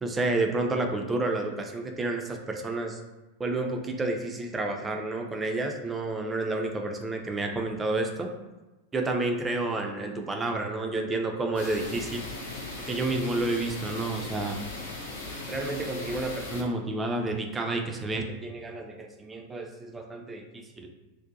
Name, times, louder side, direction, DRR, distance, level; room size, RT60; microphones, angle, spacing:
voice 1, 0.0-3.0 3.4-8.3 8.9-12.2 12.9-14.6 15.5-20.9, right 2 dB, 15° right, 3 dB, 0.3 m, -30 dB
sound 1, 11.5-16.6, left 2 dB, 60° left, 0.6 m, -38 dB
2.6 x 2.1 x 2.5 m, 1.1 s
figure-of-eight pair, 90°, 0 cm